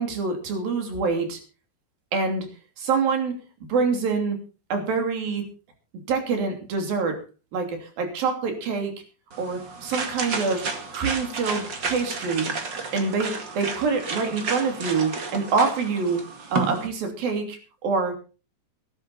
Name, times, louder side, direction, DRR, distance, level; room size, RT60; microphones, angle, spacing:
voice 1, 0.0-1.4 2.1-2.5 2.8-3.3 3.7-4.4 4.7-5.4 6.1-7.2 7.5-8.9 9.4-10.6 10.9-12.5 12.9-16.2 16.5-18.2, right 4 dB, 85° right, 5 dB, 4.8 m, -25 dB
sound 1, 9.3-16.9, right 4 dB, 35° right, 2.3 m, -32 dB
18.0 x 12.5 x 4.1 m, 0.35 s
omnidirectional pair, 4.0 m